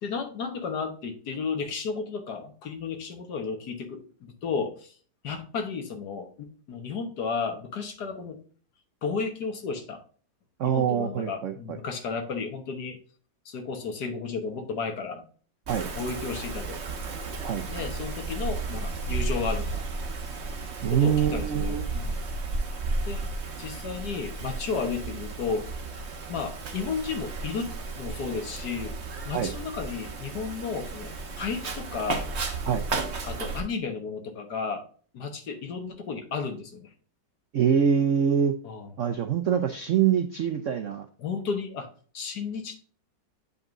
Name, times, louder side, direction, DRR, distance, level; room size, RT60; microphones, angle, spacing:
voice 1, 0.0-5.0 5.2-8.4 9.0-10.0 10.6-13.0 13.4-15.2 15.9-16.8 17.7-20.1 20.9-22.2 23.0-23.3 23.6-25.7 26.3-28.9 29.2-32.2 33.3-34.8 35.1-36.9 38.6-38.9 41.2-41.9 42.1-42.7, left 5 dB, 60° left, 6 dB, 1.7 m, -33 dB
voice 2, 10.6-11.8 15.7-15.9 17.4-17.7 20.8-21.9 29.3-29.5 32.6-32.9 37.5-38.6 39.0-41.1, right 8 dB, 75° right, 6 dB, 0.7 m, -24 dB
Wind, 15.7-33.6, right 3 dB, 40° right, 1.1 m, -33 dB
8.5 x 5.4 x 2.5 m, 0.42 s
omnidirectional pair, 2.1 m